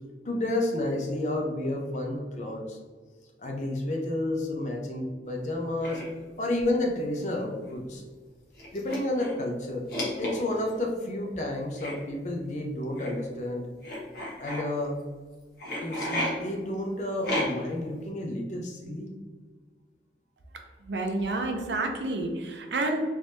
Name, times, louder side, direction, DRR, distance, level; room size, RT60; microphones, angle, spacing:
voice 1, 0.2-2.8 3.4-6.1 6.4-8.0 8.7-9.9 10.2-13.7 14.4-15.0 15.8-19.1, left 1 dB, 40° left, 1 dB, 0.6 m, -31 dB
sound 1, 5.8-6.0 7.2-7.3 7.7-7.8 8.5-9.4 9.9-10.7 11.8-11.9 13.0-13.1 13.8-14.6 15.6-16.3 17.2-17.7, left 1 dB, 55° left, 1.2 m, -32 dB
voice 2, 20.9-23.0, right 2 dB, 75° right, 3 dB, 0.6 m, -29 dB
3.4 x 3.2 x 2.7 m, 1.4 s
head